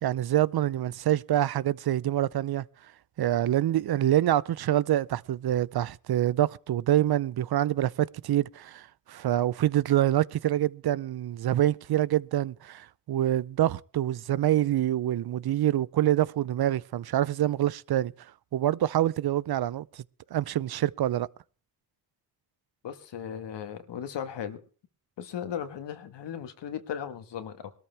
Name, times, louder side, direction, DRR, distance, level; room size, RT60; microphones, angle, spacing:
voice 1, 0.0-2.6 3.2-18.1 18.5-19.8 20.3-21.3, right 12 dB, 65° right, 0.6 m, -26 dB
voice 2, 22.8-24.6 25.2-27.7, left 8 dB, 85° left, 1.6 m, -37 dB
20.0 x 13.5 x 3.4 m
cardioid pair, 65°, 41 cm